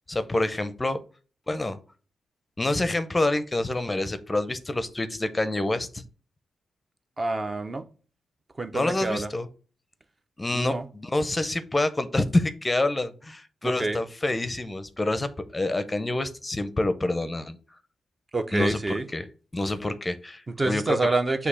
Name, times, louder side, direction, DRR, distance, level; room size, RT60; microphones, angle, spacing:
voice 1, 0.1-1.0 1.5-1.8 2.6-6.0 8.7-9.5 10.4-17.6 18.5-18.8 19.1-19.2 19.5-21.0, left 2 dB, 20° left, 11 dB, 0.6 m, -27 dB
voice 2, 7.2-7.9 8.6-9.3 10.5-10.9 13.6-14.0 18.3-19.1 20.5-21.5, right 2 dB, 25° right, 8 dB, 0.6 m, -27 dB
6.4 x 2.8 x 5.6 m, 0.38 s
cardioid pair, 105°, 0 cm